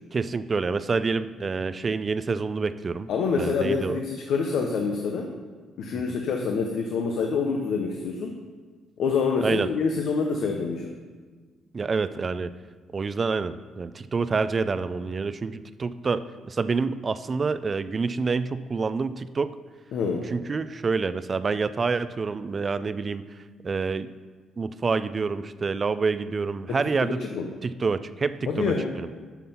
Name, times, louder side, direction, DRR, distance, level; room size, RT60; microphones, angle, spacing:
voice 1, 0.1-3.1 3.4-4.0 5.9-6.0 9.4-9.7 11.7-12.5 12.9-19.5 20.3-24.1 24.6-27.2 27.6-29.1, right 4 dB, 35° right, 14 dB, 0.4 m, -27 dB
voice 2, 3.1-5.3 5.8-8.4 9.0-10.9 19.9-20.2 26.7-27.5 28.5-29.0, left 5 dB, 75° left, 2 dB, 0.8 m, -26 dB
9.3 x 5.8 x 5.5 m, 1.4 s
cardioid pair, 90°, 0 cm